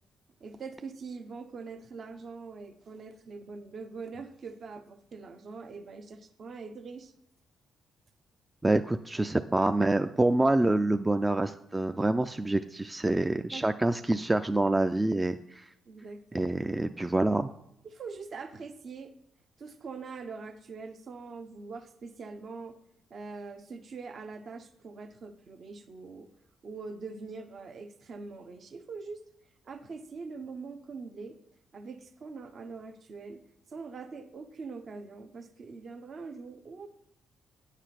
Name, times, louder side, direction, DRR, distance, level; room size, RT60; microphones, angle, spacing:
voice 1, 0.4-7.1 13.3-13.7 15.9-16.5 17.8-19.1 19.6-22.8 23.1-26.3 26.6-29.2 29.6-31.4 31.7-33.4 33.7-36.9, right 4 dB, 50° right, 7 dB, 0.8 m, -43 dB
voice 2, 8.6-15.7 16.3-17.5, right 2 dB, 15° right, 9 dB, 0.3 m, -26 dB
9.1 x 4.9 x 5.8 m, 0.78 s
cardioid pair, 90°, 0 cm